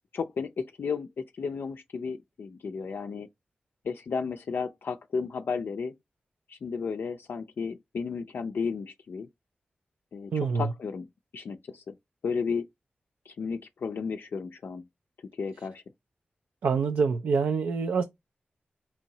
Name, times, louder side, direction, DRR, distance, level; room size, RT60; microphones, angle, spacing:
voice 1, 0.1-3.3 3.8-5.9 6.5-9.3 10.1-11.1 11.3-11.9 12.2-12.6 13.3-14.8 15.4-15.8, left 5 dB, 75° left, 0.4 m, -33 dB
voice 2, 10.3-10.7 16.6-18.0, right 5 dB, 90° right, 0.4 m, -26 dB
4.4 x 2.7 x 2.8 m
cardioid pair, 45°, 4 cm